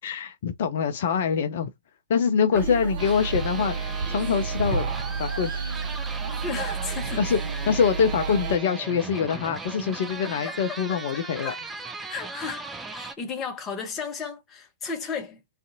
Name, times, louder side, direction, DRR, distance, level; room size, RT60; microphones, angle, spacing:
voice 1, 0.0-1.7 2.1-4.9 5.2-5.7 7.2-7.4 7.7-11.5, left 6 dB, 50° left, 0.4 m, -24 dB
sound 1, 2.5-8.6, right 5 dB, 50° right, 0.8 m, -30 dB
sound 2, 3.0-13.1, right 3 dB, 10° right, 0.4 m, -38 dB
voice 2, 6.4-7.3 10.2-10.8 11.4-11.6 12.1-12.6 12.9-15.4, left 5 dB, 20° left, 0.8 m, -34 dB
2.5 x 2.4 x 2.6 m
figure-of-eight pair, 110°, 0 cm